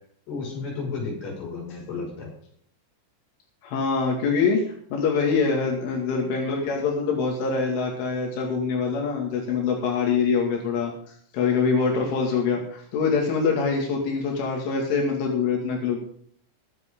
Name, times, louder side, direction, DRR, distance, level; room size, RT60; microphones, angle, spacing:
voice 1, 0.3-2.3, left 4 dB, 45° left, -1 dB, 7.3 m, -32 dB
voice 2, 3.6-16.0, left 5 dB, 85° left, -1 dB, 4.8 m, -24 dB
23.5 x 8.2 x 3.8 m, 0.62 s
omnidirectional pair, 5.4 m